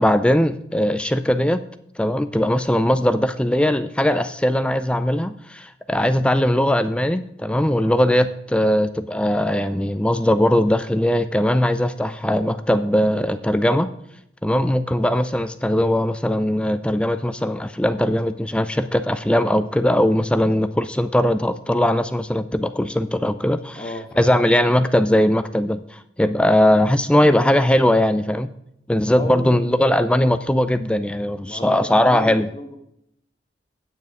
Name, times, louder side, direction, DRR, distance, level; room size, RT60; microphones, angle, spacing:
voice 1, 0.0-1.6 2.0-13.9 14.4-23.8 24.2-28.5 28.9-32.5, left 1 dB, 5° left, 11 dB, 0.4 m, -19 dB
voice 2, 7.8-8.3 23.7-24.8 29.1-29.8 31.4-32.8, left 1 dB, 25° left, 4 dB, 1.4 m, -35 dB
9.2 x 8.1 x 4.7 m, 0.74 s
head